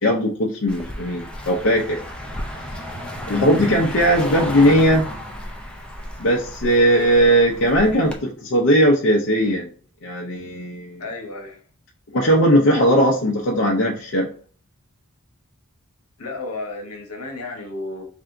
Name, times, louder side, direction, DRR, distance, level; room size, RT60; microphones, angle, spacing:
voice 1, 0.0-2.0 3.3-5.1 6.2-9.7 10.0-11.0 12.1-14.3, equal, 60° left, 0.7 m, -18 dB
Car passing by, 0.7-8.2, left 1 dB, 5° left, 0.5 m, -33 dB
voice 2, 11.0-11.6 16.2-18.0, left 2 dB, 80° left, 1.1 m, -32 dB
3.4 x 2.7 x 3.7 m
head